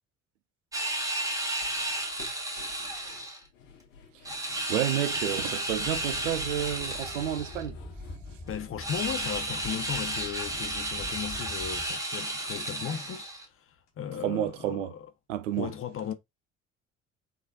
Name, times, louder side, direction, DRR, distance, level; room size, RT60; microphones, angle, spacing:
sound 1, 0.7-3.4 4.2-7.6 8.8-13.4, right 1 dB, 10° right, 0.9 m, -33 dB
sound 2, 1.6-13.9 14.2-14.3 14.6-14.7, left 4 dB, 75° left, 0.9 m, -51 dB
voice 1, 4.7-7.8 14.2-14.9 15.3-15.7, right 12 dB, 75° right, 0.5 m, -30 dB
sound 3, 5.7-11.9, left 3 dB, 10° left, 0.4 m, -45 dB
voice 2, 8.5-15.1 15.6-16.1, left 9 dB, 35° left, 0.7 m, -36 dB
3.6 x 3.1 x 2.3 m
figure-of-eight pair, 50°, 37 cm